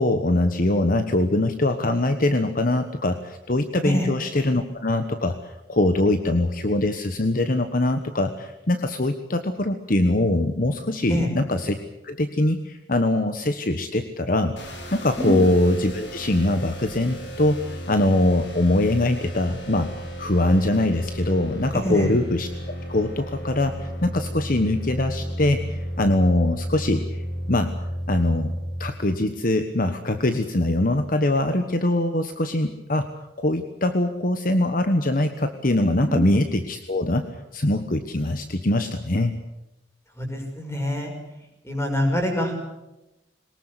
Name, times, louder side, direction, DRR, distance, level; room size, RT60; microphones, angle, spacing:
voice 1, 0.0-11.8 12.0-14.5 14.9-19.9 20.2-22.5 22.9-27.2 27.5-27.7 28.1-28.5 28.8-33.1 33.4-37.2 37.5-39.4, left 1 dB, 50° left, 8 dB, 1.2 m, -22 dB
sound 1, 14.6-28.9, equal, 80° left, 5.1 m, -33 dB
voice 2, 21.7-22.1 36.0-36.2 40.2-41.1 41.6-42.5, equal, 15° left, 2 dB, 6.2 m, -25 dB
22.5 x 20.0 x 8.2 m, 0.94 s
head